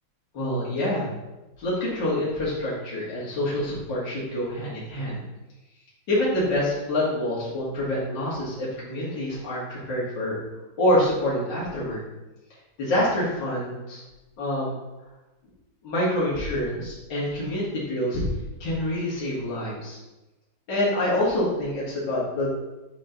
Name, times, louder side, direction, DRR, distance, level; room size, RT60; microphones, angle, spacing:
voice 1, 0.3-1.1 1.6-5.2 6.1-10.4 10.8-12.0 12.8-14.0 14.4-14.8 15.8-18.2 18.6-20.0 20.7-22.5, left 1 dB, 65° left, -8 dB, 2.7 m, -26 dB
9.0 x 4.4 x 3.9 m, 1.0 s
omnidirectional pair, 2.1 m